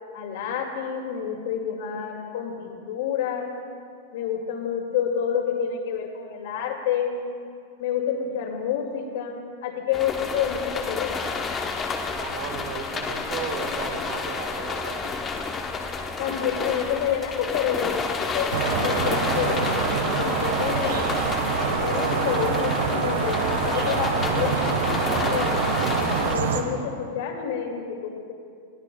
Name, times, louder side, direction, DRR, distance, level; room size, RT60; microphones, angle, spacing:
voice 1, 0.1-3.5 4.1-7.2 7.8-11.3 16.2-21.2 21.8-24.6 25.2-25.8 26.2-28.3, left 8 dB, 65° left, 2 dB, 2.2 m, -29 dB
sound 1, 9.9-26.3, left 4 dB, 15° left, 0.9 m, -30 dB
voice 2, 12.2-15.2, right 6 dB, 60° right, 5 dB, 1.5 m, -35 dB
sound 2, 18.5-26.6, right 5 dB, 80° right, 1.3 m, -25 dB
21.0 x 15.5 x 2.3 m, 2.4 s
supercardioid pair, 155°, 0 cm